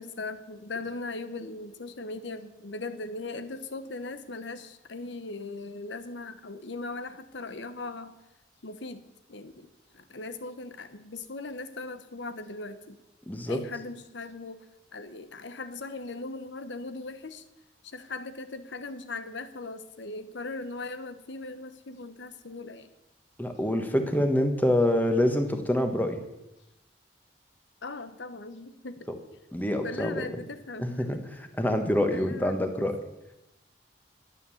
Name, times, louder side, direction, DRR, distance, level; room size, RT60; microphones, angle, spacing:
voice 1, 0.0-8.2 8.6-9.0 9.3-13.0 13.5-14.7 14.9-17.4 17.8-22.9 27.8-29.1 29.8-31.2 32.1-32.9, left 3 dB, 80° left, 11 dB, 1.1 m, -39 dB
voice 2, 13.3-13.6 23.4-26.2 29.5-30.2 30.8-31.2 31.6-33.0, left 1 dB, 10° left, 6 dB, 1.3 m, -26 dB
12.5 x 9.4 x 7.1 m, 0.90 s
head